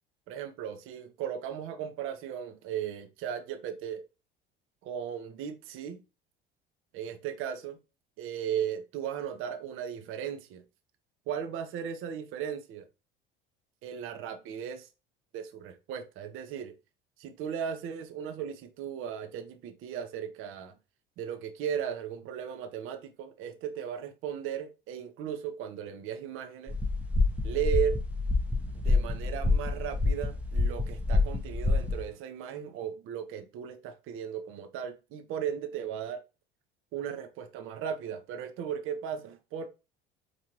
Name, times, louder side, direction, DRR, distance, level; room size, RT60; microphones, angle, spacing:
voice 1, 0.3-4.0 4.8-6.0 6.9-7.8 8.2-10.6 11.3-12.9 13.8-14.9 15.3-16.7 17.2-20.7 21.2-26.8 27.4-28.0 28.8-36.2 36.9-39.7, right 8 dB, 45° right, 0.6 m, -36 dB
sound 1, 26.7-32.1, left 3 dB, 5° right, 0.7 m, -27 dB
4.5 x 2.5 x 2.9 m
figure-of-eight pair, 65°, 29 cm